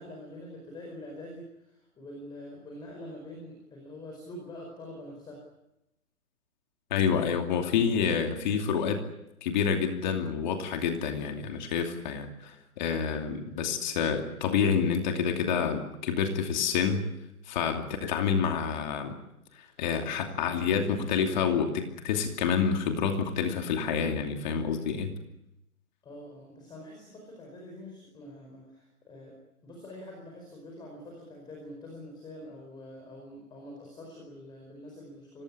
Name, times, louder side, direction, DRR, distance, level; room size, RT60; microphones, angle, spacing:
voice 1, 0.0-5.4 26.0-29.4 29.6-35.4, left 1 dB, 10° left, 0 dB, 5.0 m, -45 dB
voice 2, 6.9-9.0 9.4-17.0 17.5-19.1 19.8-25.1, left 6 dB, 30° left, 4 dB, 2.7 m, -28 dB
26.0 x 19.5 x 10.0 m, 0.89 s
hypercardioid pair, 150°, 45 cm